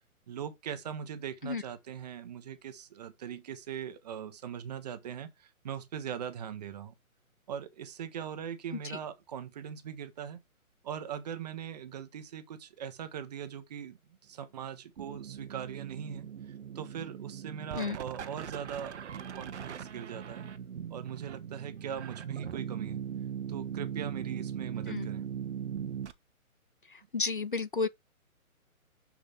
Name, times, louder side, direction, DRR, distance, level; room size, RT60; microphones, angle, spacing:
voice 1, 0.3-6.9 7.5-10.4 10.8-20.5 20.9-23.0 23.5-25.3, right 8 dB, 30° right, 1.1 m, -41 dB
sound 1, 15.0-26.1, right 8 dB, 50° right, 1.0 m, -39 dB
voice 2, 26.9-27.9, left 4 dB, 40° left, 0.4 m, -32 dB
6.6 x 6.1 x 3.4 m
hypercardioid pair, 155°, 43 cm